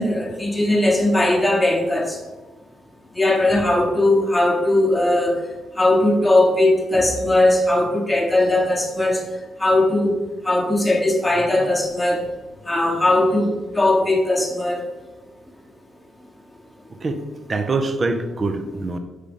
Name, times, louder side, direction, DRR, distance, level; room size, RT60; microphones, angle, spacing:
voice 1, 0.0-2.2 3.1-5.4 5.8-9.2 9.6-10.1 10.4-12.2 12.7-14.8, left 1 dB, 10° left, 0 dB, 1.2 m, -19 dB
voice 2, 17.5-19.0, right 3 dB, 30° right, 7 dB, 0.6 m, -24 dB
5.5 x 5.0 x 5.4 m, 1.2 s
cardioid pair, 155°, 0 cm